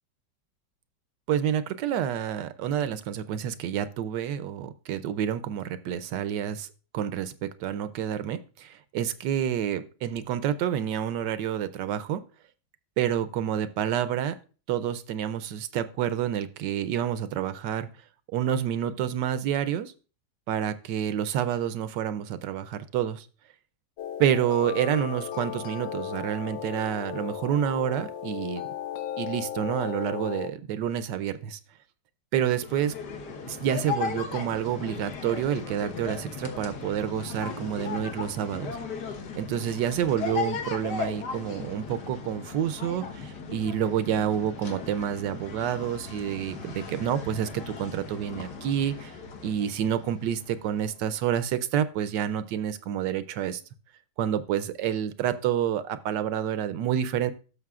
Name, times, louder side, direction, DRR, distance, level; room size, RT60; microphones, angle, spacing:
voice 1, 1.3-6.7 6.9-12.2 13.0-14.4 14.7-17.9 18.3-19.9 20.5-23.3 24.2-28.6 29.2-31.6 32.3-32.9 33.5-38.8 39.4-49.1 49.4-53.6 54.2-57.3, right 9 dB, 80° right, 13 dB, 1.2 m, -28 dB
sound 1, 24.0-30.5, left 9 dB, 85° left, 1.3 m, -35 dB
sound 2, 32.5-51.0, left 5 dB, 65° left, 1.7 m, -37 dB
12.5 x 6.6 x 2.4 m, 0.36 s
omnidirectional pair, 1.9 m